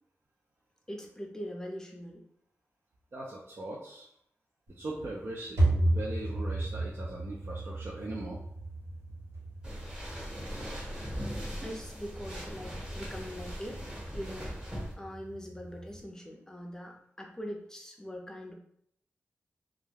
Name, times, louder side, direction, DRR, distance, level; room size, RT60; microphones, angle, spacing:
voice 1, 0.9-2.2 11.6-13.8 14.1-18.5, equal, 10° left, 1 dB, 0.5 m, -42 dB
voice 2, 3.1-4.1 4.8-8.4, right 2 dB, 55° right, -3 dB, 0.5 m, -40 dB
sound 1, 4.7-16.0, right 1 dB, 80° right, 1.0 m, -35 dB
sound 2, 9.6-14.9, equal, 15° right, 1.1 m, -40 dB
2.3 x 2.1 x 3.2 m, 0.70 s
cardioid pair, 65°, 5 cm